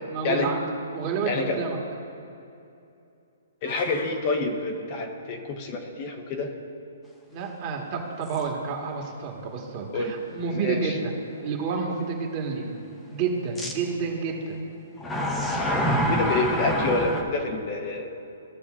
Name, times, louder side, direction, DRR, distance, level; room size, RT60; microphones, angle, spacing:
voice 1, 0.1-0.6 0.9-1.8 7.3-11.1 11.4-12.8 13.1-14.6, right 5 dB, 35° right, 0 dB, 1.5 m, -29 dB
voice 2, 1.3-1.6 3.6-6.5 9.9-10.1 10.5-11.0 16.1-18.1, left 3 dB, 35° left, 3 dB, 1.0 m, -27 dB
sound 1, 3.6-4.1, left 4 dB, 65° left, 1.0 m, -36 dB
sound 2, 8.3-8.4 9.0-9.1 13.6-13.7 15.0-17.2, equal, 10° left, 0.9 m, -26 dB
15.5 x 6.7 x 2.5 m, 2.7 s
hypercardioid pair, 150°, 0 cm